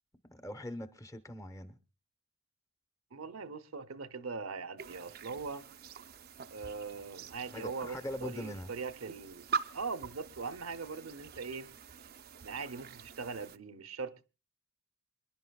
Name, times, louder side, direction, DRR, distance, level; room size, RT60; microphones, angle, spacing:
voice 1, 0.2-1.8 7.5-8.7, left 1 dB, 15° left, 0.9 m, -42 dB
voice 2, 3.1-5.7 6.5-9.5 9.7-11.7 12.4-14.3, right 4 dB, 75° right, 0.8 m, -41 dB
sound 1, 4.8-13.6, right 5 dB, 45° right, 0.6 m, -44 dB
27.5 x 11.0 x 2.3 m
head